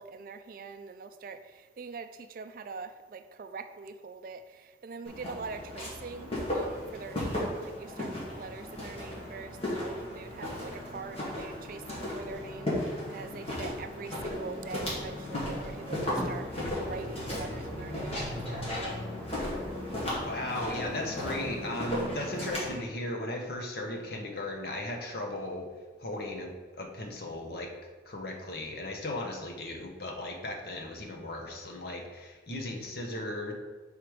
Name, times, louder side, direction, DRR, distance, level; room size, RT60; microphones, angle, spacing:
voice 1, 0.0-19.0, right 4 dB, 50° right, 9 dB, 0.3 m, -43 dB
Walk footsteps, 5.0-22.7, left 1 dB, 35° left, 1.8 m, -35 dB
sound 1, 16.2-17.2 17.5-19.9 20.3-21.2, equal, 5° right, 0.9 m, -44 dB
voice 2, 20.2-25.7 26.0-27.7 28.1-33.5, left 1 dB, 55° left, 2 dB, 0.9 m, -36 dB
4.9 x 4.6 x 4.8 m, 1.4 s
head